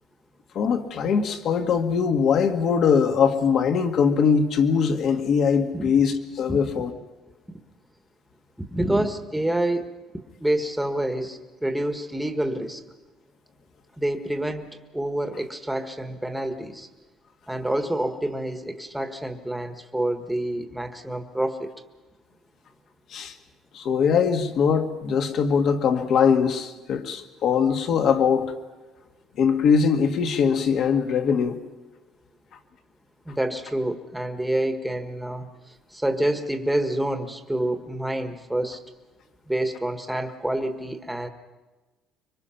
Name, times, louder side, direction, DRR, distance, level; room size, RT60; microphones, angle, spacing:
voice 1, 0.6-6.9 23.1-23.3 23.7-28.5 29.4-31.6, left 6 dB, 50° left, 6 dB, 1.7 m, -21 dB
voice 2, 8.7-9.9 10.4-12.8 14.0-16.9 17.5-21.7 33.2-35.5 35.9-38.8 39.5-41.3, right 1 dB, 5° right, 6 dB, 1.5 m, -27 dB
26.0 x 24.5 x 5.8 m, 1.2 s
cardioid pair, 155°, 0 cm